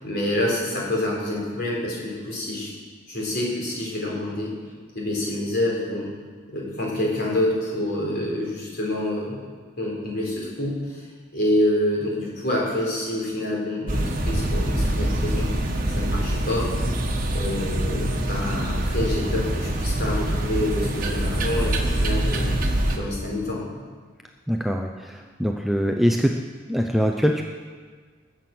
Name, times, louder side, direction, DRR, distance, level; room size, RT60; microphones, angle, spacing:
voice 1, 0.0-2.7 3.1-4.5 4.9-6.1 6.5-9.4 9.8-11.0 11.3-15.5 15.9-16.7 17.3-22.5 22.9-23.6, left 1 dB, 50° left, -3 dB, 4.2 m, -27 dB
sound 1, 13.9-23.0, right 1 dB, 45° right, 1.4 m, -24 dB
voice 2, 24.5-26.4 26.7-27.4, equal, ahead, 2 dB, 0.5 m, -23 dB
20.0 x 7.7 x 6.1 m, 1.5 s
head